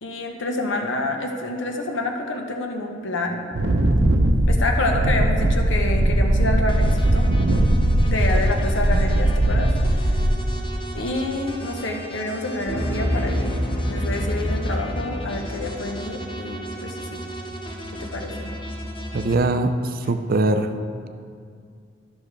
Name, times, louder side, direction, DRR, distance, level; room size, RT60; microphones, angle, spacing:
voice 1, 0.0-3.4 4.5-7.3 8.0-9.7 10.0-10.1 10.9-13.6 13.9-17.2 17.9-18.5, left 2 dB, 75° left, 3 dB, 1.0 m, -28 dB
Wind, 3.5-10.7, right 1 dB, 80° right, 0.8 m, -19 dB
sound 1, 6.7-19.3, equal, 25° left, 0.8 m, -36 dB
sound 2, 12.7-16.1, equal, 55° left, 1.6 m, -26 dB
voice 2, 19.1-20.7, right 2 dB, 50° right, 8 dB, 0.5 m, -22 dB
13.0 x 6.3 x 3.4 m, 2.3 s
head